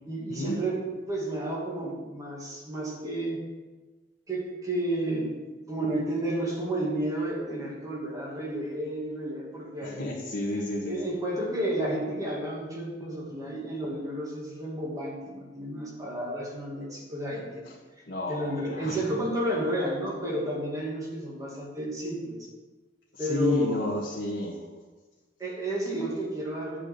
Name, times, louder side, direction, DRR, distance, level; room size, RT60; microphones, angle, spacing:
voice 1, 0.0-3.4 4.3-5.3 5.7-10.1 10.8-17.6 18.3-22.4 23.2-23.9 25.4-26.8, right 1 dB, 20° right, -3 dB, 2.1 m, -31 dB
voice 2, 9.8-11.0 18.1-19.2 23.2-24.6, left 1 dB, 75° left, -7 dB, 1.7 m, -31 dB
9.7 x 4.9 x 6.8 m, 1.3 s
head